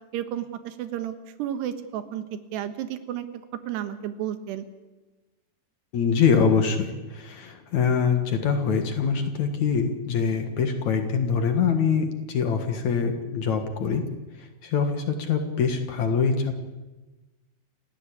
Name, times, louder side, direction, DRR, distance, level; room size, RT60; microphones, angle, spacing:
voice 1, 0.1-1.1 1.4-3.3 3.7-4.7, right 11 dB, 90° right, 10 dB, 3.5 m, -32 dB
voice 2, 5.9-14.0 14.4-16.6, left 6 dB, 55° left, 6 dB, 2.5 m, -24 dB
29.0 x 15.5 x 8.6 m, 1.2 s
omnidirectional pair, 4.7 m